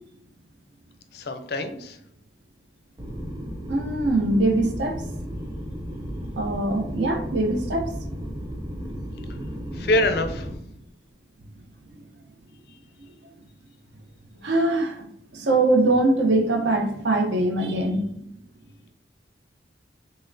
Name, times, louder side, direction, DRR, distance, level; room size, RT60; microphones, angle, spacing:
voice 1, 1.1-2.0 9.7-10.5 12.7-12.8, left 1 dB, 55° left, 7 dB, 0.4 m, -25 dB
sound 1, 3.0-10.6, equal, 20° right, 0.4 m, -34 dB
voice 2, 3.7-5.0 6.4-7.9 9.5-9.7 14.4-15.0 15.3-18.2, right 2 dB, 75° right, 5 dB, 0.6 m, -22 dB
5.4 x 2.0 x 2.5 m, 0.71 s
head